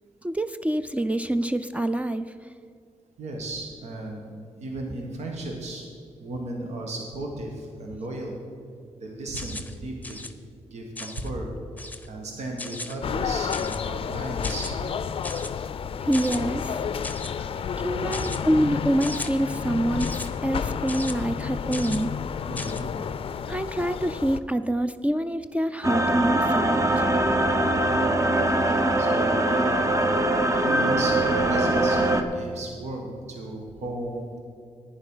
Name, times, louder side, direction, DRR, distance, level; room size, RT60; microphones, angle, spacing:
voice 1, 0.2-2.3 16.0-16.8 17.3-22.1 23.5-27.1, right 1 dB, 10° right, 11 dB, 0.4 m, -26 dB
voice 2, 3.2-4.3 4.6-5.8 6.2-8.4 9.0-10.3 10.7-11.5 11.8-14.8 17.9-18.2 22.5-22.9 27.8-28.3 29.0-29.6 30.5-34.3, right 2 dB, 80° right, 1 dB, 1.5 m, -35 dB
sound 1, 9.3-9.8 10.0-10.3 11.0-11.3 11.8-12.1 12.6-13.0 13.5-13.9 14.4-14.7 15.2-15.5 16.1-16.4 17.0-17.3 18.1-18.4 19.0-19.3 20.0-20.3 20.9-21.1 21.7-22.0 22.6-22.8, left 2 dB, 15° left, 0.8 m, -36 dB
sound 2, 13.0-24.4, left 7 dB, 55° left, 0.4 m, -31 dB
sound 3, 25.8-32.2, right 1 dB, 30° right, 0.9 m, -22 dB
11.0 x 9.6 x 5.6 m, 2.3 s
cardioid pair, 80°, 11 cm